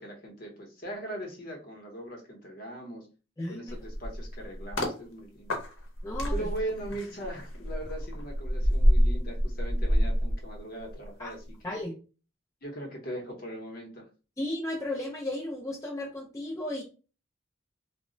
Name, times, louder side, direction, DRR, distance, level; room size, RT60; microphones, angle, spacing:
voice 1, 0.0-3.1 3.5-5.5 6.3-11.8 12.6-14.1, right 1 dB, 50° left, 1 dB, 0.8 m, -40 dB
voice 2, 3.4-3.8 6.0-6.5 11.2-11.4 11.6-11.9 14.4-16.8, left 1 dB, 15° left, -3 dB, 0.4 m, -34 dB
sound 1, 3.7-5.0 5.5-11.1 11.4-11.7, equal, 85° left, 0.8 m, -27 dB
2.1 x 2.0 x 3.7 m, 0.34 s
head